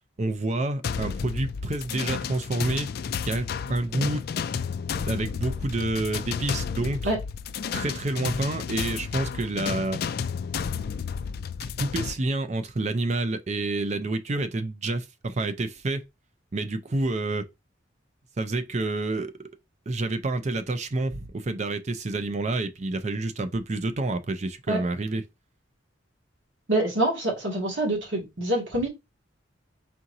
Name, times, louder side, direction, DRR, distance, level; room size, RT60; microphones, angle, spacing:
voice 1, 0.2-2.9 3.3-4.2 5.1-7.1 7.7-10.0 11.8-16.0 16.5-17.5 18.4-19.5 19.9-25.2, right 2 dB, 35° right, 0.5 m, -28 dB
sound 1, 0.8-12.1, left 6 dB, 55° left, 0.3 m, -32 dB
voice 2, 26.7-28.9, right 1 dB, 75° right, 2.1 m, -26 dB
4.4 x 3.7 x 2.7 m
head